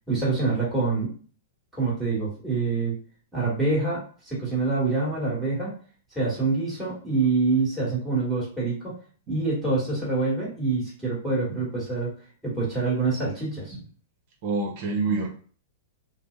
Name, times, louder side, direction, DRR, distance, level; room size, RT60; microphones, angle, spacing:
voice 1, 0.1-1.1 1.7-3.0 3.3-5.7 6.1-8.9 9.3-12.1 12.4-13.7, right 3 dB, ahead, -8 dB, 1.4 m, -26 dB
voice 2, 14.4-15.3, right 3 dB, 50° right, 2 dB, 0.8 m, -27 dB
2.6 x 2.0 x 2.4 m, 0.42 s
hypercardioid pair, 115°, 0 cm